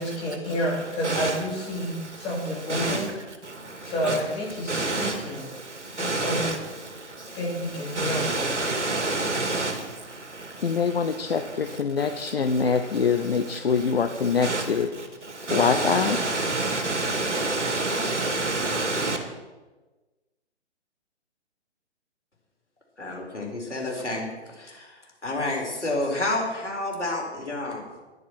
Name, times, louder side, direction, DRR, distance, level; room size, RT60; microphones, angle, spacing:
voice 1, 0.0-3.1 3.8-5.5 5.9-6.5 7.3-8.3, equal, 15° left, 3.5 m, -29 dB
voice 2, 1.0-1.3 2.7-3.1 3.4-4.2 4.7-6.6 6.8-7.4 7.9-10.8 12.0-12.1 14.4-14.7 15.0-19.2, right 2 dB, 75° right, 2.4 m, -28 dB
voice 3, 10.6-14.9 15.5-16.2, left 5 dB, 60° left, 0.8 m, -24 dB
voice 4, 23.0-28.0, left 2 dB, 80° left, 4.5 m, -30 dB
10.5 x 10.5 x 6.0 m
figure-of-eight pair, 135°, 35 cm